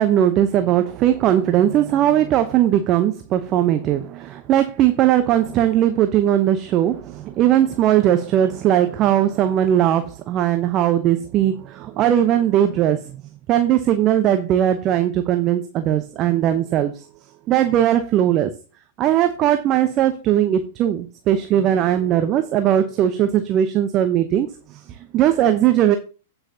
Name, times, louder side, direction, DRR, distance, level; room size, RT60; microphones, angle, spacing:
voice 1, 0.0-13.2 13.5-17.0 17.5-18.5 19.0-26.0, right 11 dB, 35° right, 9 dB, 0.8 m, -19 dB
16.5 x 5.7 x 2.7 m, 0.34 s
figure-of-eight pair, 100°, 0 cm